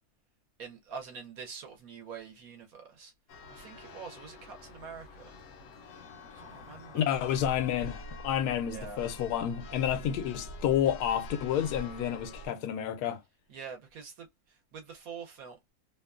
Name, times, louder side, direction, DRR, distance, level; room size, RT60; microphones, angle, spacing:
voice 1, 0.6-3.1 3.5-5.3 6.3-7.2 8.6-9.1 13.5-15.7, right 6 dB, 70° right, 1.1 m, -45 dB
Church bell, 3.3-12.5, left 1 dB, 70° left, 0.8 m, -45 dB
voice 2, 6.9-13.2, left 10 dB, 85° left, 1.1 m, -30 dB
2.9 x 2.1 x 2.3 m
omnidirectional pair, 1.6 m